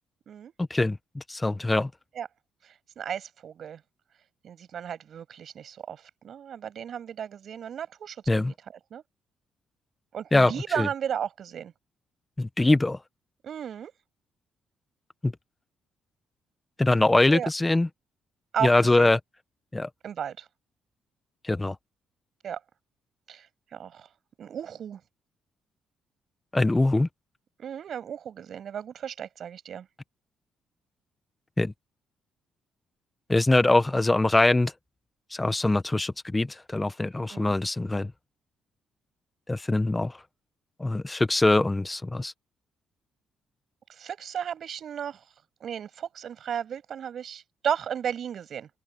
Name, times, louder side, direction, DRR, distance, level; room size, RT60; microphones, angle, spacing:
voice 1, 0.7-1.9 8.3-8.5 10.3-10.9 12.4-13.0 15.2-15.3 16.8-17.9 18.6-19.2 19.7-19.9 21.4-21.7 26.5-27.1 31.6-31.7 33.3-34.7 35.3-38.1 39.5-40.2 40.8-42.3, left 2 dB, 15° left, 1.3 m, -23 dB
voice 2, 2.6-3.8 4.4-8.5 8.9-9.0 10.1-11.7 13.4-13.9 17.3-17.5 18.5-19.1 20.0-20.5 22.4-22.6 23.3-23.5 23.7-24.1 24.4-25.0 27.6-29.9 37.3-37.5 43.9-45.2 45.6-48.7, right 8 dB, 60° right, 7.9 m, -34 dB
open air
cardioid pair, 90°, 0 cm